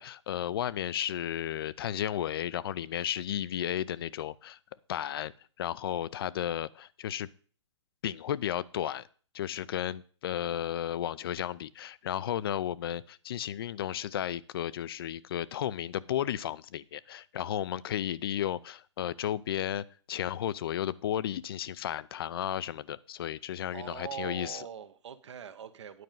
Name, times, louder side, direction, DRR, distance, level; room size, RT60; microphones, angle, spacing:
voice 1, 0.0-4.6 4.9-5.3 5.6-7.3 8.0-9.0 9.3-24.6, left 11 dB, 50° left, 0.5 m, -33 dB
voice 2, 23.7-26.0, right 8 dB, 65° right, 1.1 m, -42 dB
9.5 x 5.3 x 7.4 m
hypercardioid pair, 150°, 16 cm